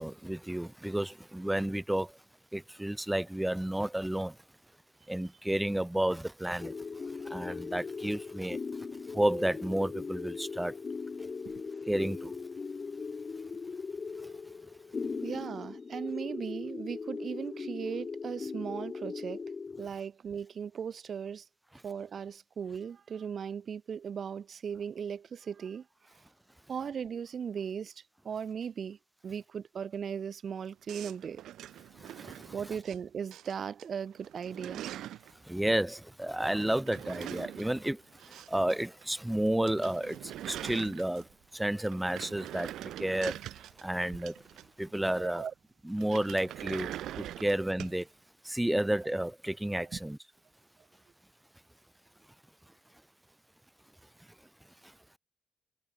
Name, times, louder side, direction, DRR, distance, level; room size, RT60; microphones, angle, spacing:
voice 1, 0.0-2.2 2.5-4.4 5.1-6.7 7.2-8.6 9.1-10.8 11.2-11.3 11.9-12.3 32.0-32.5 35.4-41.3 41.5-43.4 43.8-44.4 44.8-45.5 45.8-48.1 48.4-50.2, right 1 dB, 5° right, 1.9 m, -31 dB
sound 1, 6.6-19.9, left 4 dB, 35° left, 1.3 m, -39 dB
voice 2, 15.2-19.4 19.8-21.5 21.8-26.3 26.7-29.0 29.2-31.4 32.5-34.8 45.1-45.5 49.8-50.0, right 7 dB, 50° right, 0.6 m, -38 dB
sound 2, 30.9-33.0 33.3-33.8 34.1-35.3 36.6-38.8 39.0-39.1 39.4-39.5 39.7-41.4 41.8-44.9 46.0-48.0, right 12 dB, 80° right, 1.8 m, -43 dB
cardioid pair, 90°, 0 cm